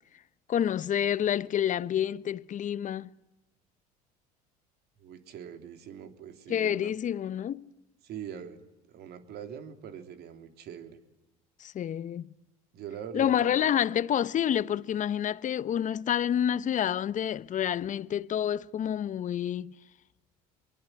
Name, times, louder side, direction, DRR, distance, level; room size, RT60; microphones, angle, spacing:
voice 1, 0.5-3.1 6.5-7.7 11.6-12.3 13.1-19.7, left 10 dB, 40° left, 1.0 m, -28 dB
voice 2, 5.0-6.9 8.0-8.6 8.9-11.0 12.7-13.7, right 8 dB, 60° right, 3.5 m, -43 dB
26.5 x 23.0 x 9.6 m
hypercardioid pair, 70°, 19 cm